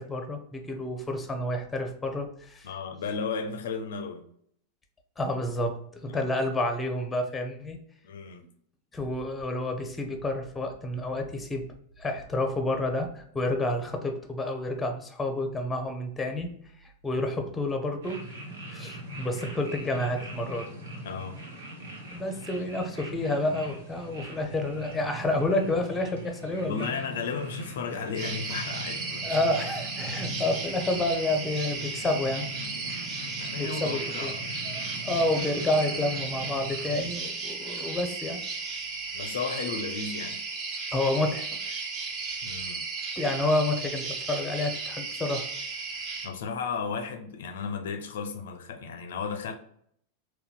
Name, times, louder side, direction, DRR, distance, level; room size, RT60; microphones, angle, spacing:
voice 1, 0.0-2.7 5.2-7.8 8.9-11.6 12.0-16.5 16.8-18.2 18.7-20.7 22.1-26.9 29.2-32.5 33.6-34.3 34.6-38.4 40.9-41.8 43.2-45.5, left 2 dB, 10° left, 5 dB, 0.6 m, -29 dB
voice 2, 2.6-4.2 6.1-6.3 8.0-8.4 21.0-21.4 26.7-29.4 30.1-30.4 33.4-34.6 39.1-40.4 42.4-42.8 46.2-49.5, left 5 dB, 65° left, 6 dB, 0.4 m, -34 dB
sound 1, 18.0-37.1, right 1 dB, 70° right, 0.9 m, -41 dB
sound 2, 28.1-46.3, right 4 dB, 40° right, 0.7 m, -35 dB
3.9 x 2.2 x 2.3 m, 0.67 s
figure-of-eight pair, 90°, 0 cm